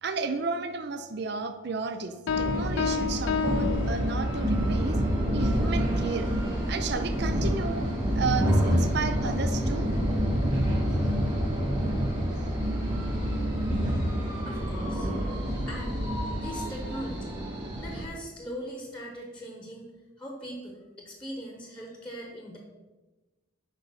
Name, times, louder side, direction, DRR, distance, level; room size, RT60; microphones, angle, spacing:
voice 1, 0.0-5.0 5.3-6.3 6.7-9.9, right 4 dB, 50° right, 8 dB, 0.5 m, -33 dB
Piano, 2.3-4.6, left 7 dB, 70° left, 0.4 m, -31 dB
sound 1, 2.3-18.0, equal, 20° right, 2.0 m, -27 dB
voice 2, 14.4-15.1 15.7-16.0 16.3-17.4 17.8-19.9 20.2-22.6, equal, 5° left, 1 dB, 1.0 m, -40 dB
7.1 x 5.3 x 5.7 m, 1.2 s
head